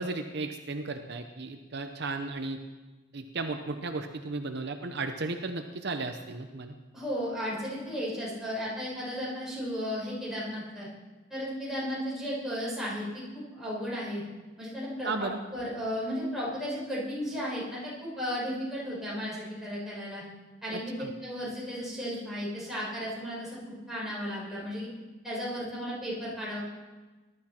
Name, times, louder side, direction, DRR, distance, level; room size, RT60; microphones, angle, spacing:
voice 1, 0.0-2.6 3.1-6.7 15.0-15.4 21.0-21.1, right 3 dB, 60° right, 6 dB, 0.8 m, -34 dB
voice 2, 6.9-10.9 11.3-14.2 14.6-20.2 20.6-20.9 21.2-24.9 25.2-26.6, equal, ahead, -7 dB, 6.2 m, -34 dB
20.5 x 12.0 x 4.4 m, 1.2 s
head